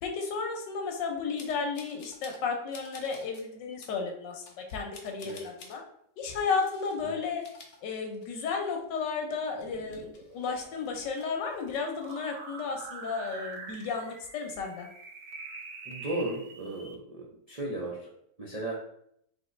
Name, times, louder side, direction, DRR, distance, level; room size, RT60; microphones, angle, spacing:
voice 1, 0.0-4.4 4.7-5.8 6.2-7.4 7.8-14.9, left 5 dB, 80° left, 2 dB, 1.5 m, -33 dB
sound 1, 1.4-2.5 2.7-3.5 3.8-4.0 4.4-5.8 6.4-7.0 7.3-8.5 8.8-8.9 9.4-11.3 11.6-12.1, left 4 dB, 60° left, 0.6 m, -51 dB
sound 2, 9.5-17.0, right 3 dB, 65° right, 0.9 m, -46 dB
voice 2, 15.9-18.1 18.4-18.8, right 2 dB, 45° right, -5 dB, 0.5 m, -35 dB
4.1 x 3.4 x 3.2 m, 0.71 s
omnidirectional pair, 1.9 m